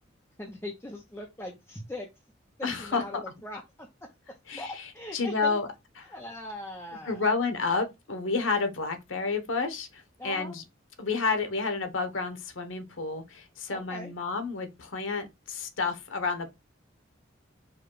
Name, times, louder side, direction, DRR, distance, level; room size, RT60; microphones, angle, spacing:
voice 1, 0.4-2.1 2.6-3.9 4.6-5.6 6.1-7.2 10.2-10.6 13.7-14.1, left 1 dB, 10° left, 0.6 m, -40 dB
voice 2, 2.6-3.2 4.5-5.7 7.1-10.6 11.0-16.5, left 4 dB, 80° left, 0.9 m, -30 dB
4.9 x 2.2 x 4.6 m
head